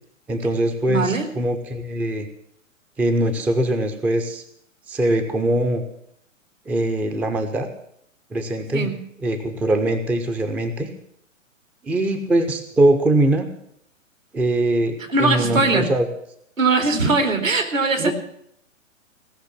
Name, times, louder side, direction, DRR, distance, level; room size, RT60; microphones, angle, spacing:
voice 1, 0.3-2.3 3.0-4.4 4.9-5.8 6.7-7.7 8.3-8.9 9.2-10.9 11.8-13.5 14.3-16.1 18.0-18.1, right 1 dB, 5° right, 6 dB, 0.5 m, -22 dB
voice 2, 0.9-1.3 8.7-9.0 15.1-15.9 16.6-18.1, right 3 dB, 80° right, 5 dB, 2.7 m, -20 dB
17.0 x 6.4 x 9.6 m, 0.70 s
figure-of-eight pair, 115°, 39 cm